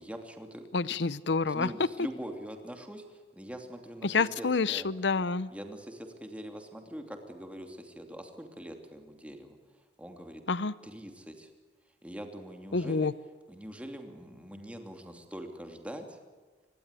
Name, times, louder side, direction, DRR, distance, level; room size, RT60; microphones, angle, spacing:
voice 1, 0.0-0.6 1.5-4.9 5.5-9.6 10.0-10.4 10.8-11.5 12.0-13.1 13.5-16.2, equal, 10° right, 4 dB, 2.8 m, -43 dB
voice 2, 0.7-1.7 4.0-5.5 10.5-10.7 12.7-13.1, left 4 dB, 75° left, 17 dB, 0.8 m, -28 dB
25.5 x 20.0 x 8.4 m, 1.4 s
head